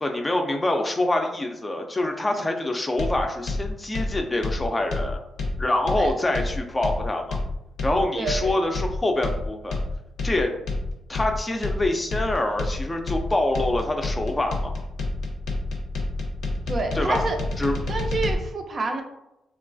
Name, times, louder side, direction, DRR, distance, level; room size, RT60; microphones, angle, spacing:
voice 1, 0.0-5.2 5.6-7.4 7.8-9.8 10.2-10.5 11.1-14.7 16.9-17.2 17.6-17.8, left 1 dB, 25° left, 3 dB, 0.4 m, -25 dB
sound 1, 3.0-18.3, left 2 dB, 80° left, 0.5 m, -29 dB
voice 2, 8.2-8.5 16.7-17.4 17.9-19.0, right 3 dB, 50° right, 4 dB, 0.4 m, -28 dB
3.0 x 2.2 x 2.5 m, 0.89 s
cardioid pair, 65°, 0 cm